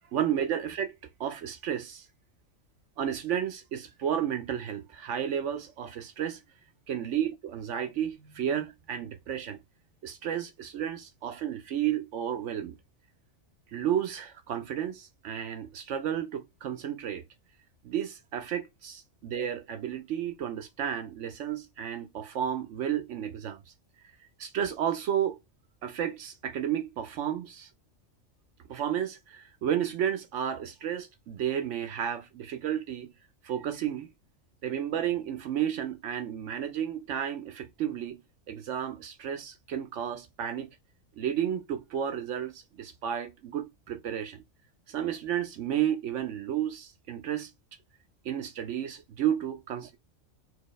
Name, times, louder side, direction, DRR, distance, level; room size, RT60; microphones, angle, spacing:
voice 1, 0.1-0.9 1.2-2.1 3.0-6.4 6.9-9.6 10.0-12.8 13.7-17.2 17.8-23.6 24.4-25.4 25.8-27.7 28.7-33.1 33.4-34.1 34.6-38.2 38.5-40.7 41.2-44.4 44.9-47.5 48.2-50.0, right 9 dB, 70° right, 0.9 m, -32 dB
4.6 x 2.9 x 3.1 m
omnidirectional pair, 1.4 m